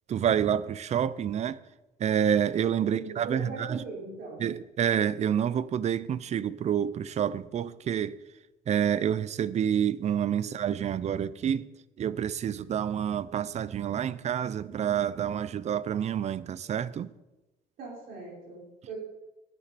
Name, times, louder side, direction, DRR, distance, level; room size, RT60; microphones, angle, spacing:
voice 1, 0.1-1.6 2.0-3.8 4.4-8.1 8.7-11.7 12.0-17.1, right 9 dB, 40° right, 0.6 m, -28 dB
voice 2, 2.8-4.5 10.4-10.5 17.8-19.0, right 3 dB, 70° right, 5.1 m, -40 dB
14.5 x 10.5 x 4.2 m
cardioid pair, 110°, 17 cm